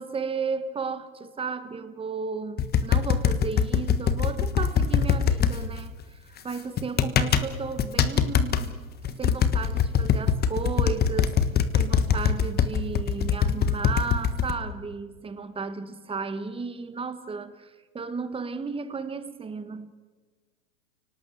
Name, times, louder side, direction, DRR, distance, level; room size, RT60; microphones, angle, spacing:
voice 1, 0.0-11.5 11.7-19.9, right 5 dB, 10° right, 1.6 m, -34 dB
sound 1, 2.6-5.5 6.8-7.5 7.8-8.6 9.0-14.5, left 7 dB, 20° left, 1.4 m, -22 dB
30.0 x 18.5 x 7.9 m
hypercardioid pair, 130°, 44 cm